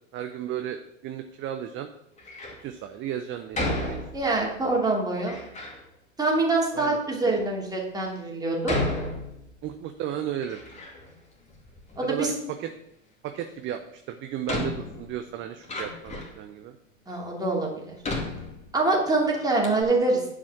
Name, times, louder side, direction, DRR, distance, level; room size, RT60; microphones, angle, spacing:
voice 1, 0.1-1.9 2.6-4.0 6.7-7.0 9.6-10.6 12.0-12.3 12.6-12.7 13.2-13.8 14.1-16.7, right 10 dB, 30° right, 7 dB, 0.8 m, -34 dB
Door, 2.2-2.7 3.5-4.5 5.2-5.8 6.6-6.7 7.4-7.5 8.6-9.8 10.1-11.2 11.5-12.3 13.7-13.8 14.5-16.4 17.1-17.2 18.0-19.1 19.4-19.5 19.6-19.8, left 2 dB, 15° left, 2.5 m, -33 dB
voice 2, 4.1-5.4 6.2-8.8 12.0-12.3 17.1-18.0 18.7-20.2, right 2 dB, 10° right, -2 dB, 3.0 m, -25 dB
10.5 x 5.0 x 6.2 m, 0.78 s
figure-of-eight pair, 90°, 39 cm